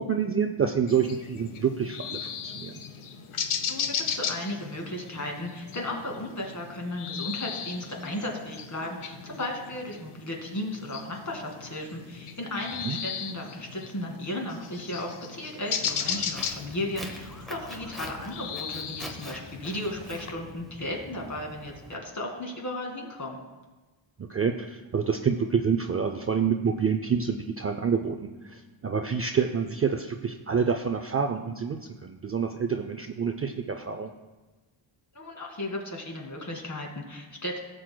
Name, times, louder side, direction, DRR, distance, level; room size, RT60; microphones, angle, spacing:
voice 1, 0.0-2.8 12.8-13.0 24.2-28.2 28.4-34.1, right 6 dB, 30° right, 4 dB, 0.4 m, -27 dB
sound 1, 0.9-20.3, left 7 dB, 85° left, 0.9 m, -37 dB
voice 2, 3.7-23.4 35.1-37.6, left 1 dB, 35° left, 1 dB, 2.0 m, -35 dB
Walk footsteps, 15.9-22.0, equal, ahead, 0.9 m, -44 dB
17.5 x 7.7 x 2.2 m, 1.2 s
wide cardioid pair, 145°, 49 cm